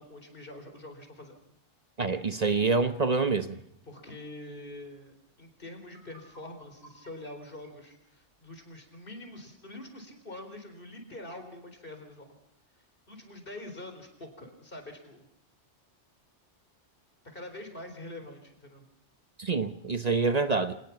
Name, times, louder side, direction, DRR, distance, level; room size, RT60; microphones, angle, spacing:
voice 1, 0.0-1.4 3.8-12.3 13.1-15.2 17.2-18.9, left 1 dB, 50° left, 4.4 m, -45 dB
voice 2, 2.0-3.6 19.4-20.8, right 4 dB, 35° right, 0.9 m, -26 dB
sound 1, 5.8-8.9, right 1 dB, 55° right, 7.0 m, -57 dB
26.0 x 19.0 x 6.0 m
omnidirectional pair, 1.2 m